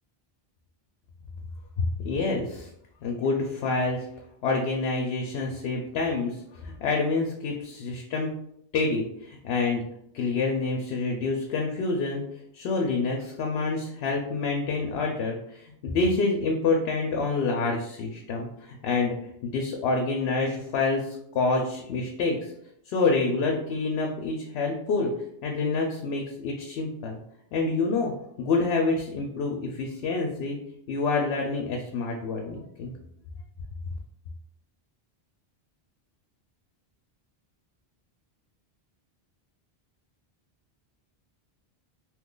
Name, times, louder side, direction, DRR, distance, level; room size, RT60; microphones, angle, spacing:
voice 1, 1.8-2.7 3.0-4.0 4.4-6.3 6.6-8.3 8.7-9.8 10.1-12.2 12.5-19.2 19.4-22.5 22.9-25.1 25.4-27.2 27.5-28.1 28.4-30.6 30.9-32.9, left 3 dB, 90° left, 1 dB, 0.8 m, -27 dB
2.9 x 2.3 x 3.7 m, 0.73 s
omnidirectional pair, 1.0 m